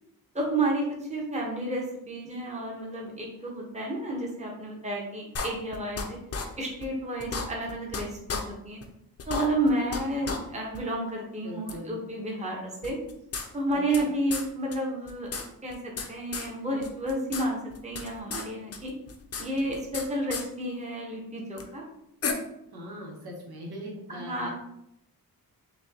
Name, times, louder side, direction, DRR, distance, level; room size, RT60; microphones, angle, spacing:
voice 1, 0.3-6.2 6.6-8.8 9.3-13.0 13.5-15.3 15.6-18.9 19.4-21.8 24.1-24.5, right 1 dB, 20° right, -2 dB, 0.9 m, -31 dB
sound 1, 5.4-6.1 6.3-6.5 6.8-6.9 7.2-8.0 8.3-8.4 8.8-8.9 9.2-10.0 10.3-10.4 10.7-10.8 11.7-11.8 12.8-14.0 14.3-14.5 14.7-14.8 15.1-16.1 16.3-16.5 16.8-17.5 17.7-18.5 18.7-20.0 20.3-20.4 21.6-21.7 22.2-22.3, left 5 dB, 40° left, 0.5 m, -33 dB
voice 2, 11.4-12.0 13.7-14.1 22.7-24.5, equal, 85° right, -1 dB, 1.2 m, -41 dB
6.2 x 2.2 x 2.8 m, 0.81 s
wide cardioid pair, 130°, 37 cm